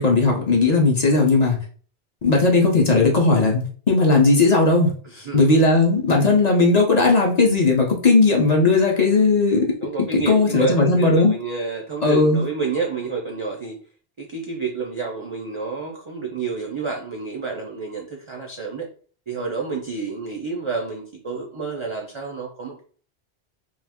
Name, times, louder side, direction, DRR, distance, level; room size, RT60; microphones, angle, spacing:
voice 1, 0.0-1.6 2.2-4.9 5.3-9.7 10.3-11.3 12.0-12.4, left 3 dB, 45° left, -1 dB, 0.6 m, -17 dB
voice 2, 5.0-5.5 9.8-13.8 14.2-18.9 19.3-22.8, right 4 dB, 50° right, -1 dB, 0.3 m, -29 dB
2.4 x 2.3 x 3.4 m, 0.44 s
omnidirectional pair, 1.1 m